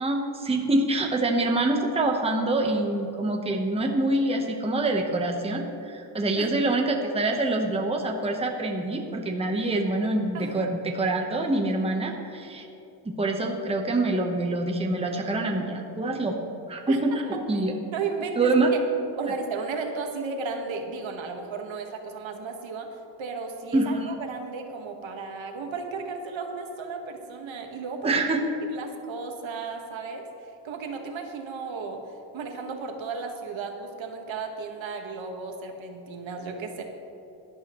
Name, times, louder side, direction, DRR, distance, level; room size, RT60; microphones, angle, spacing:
voice 1, 0.0-12.7 13.0-16.4 16.7-17.7 18.4-18.7 23.7-24.2 28.0-28.4, right 2 dB, 10° right, 1 dB, 1.0 m, -25 dB
voice 2, 10.3-10.7 16.9-17.2 17.9-18.8 19.2-22.9 23.2-28.1 28.7-30.2 30.6-32.0 32.3-36.8, right 4 dB, 70° right, 3 dB, 1.5 m, -34 dB
17.5 x 11.5 x 3.1 m, 2.8 s
cardioid pair, 135°, 48 cm